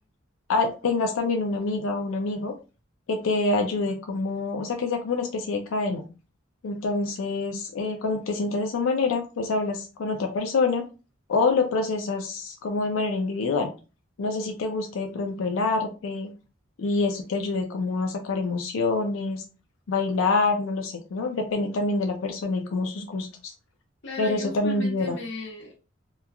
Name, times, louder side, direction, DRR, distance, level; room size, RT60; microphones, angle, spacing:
voice 1, 0.5-2.5 3.1-6.0 6.6-10.9 11.3-13.7 14.2-16.3 16.8-19.4 19.9-23.5 24.2-25.2, left 3 dB, 90° left, 5 dB, 0.4 m, -26 dB
voice 2, 24.0-25.8, left 1 dB, 60° left, 0 dB, 1.0 m, -35 dB
3.0 x 2.2 x 2.3 m, 0.32 s
head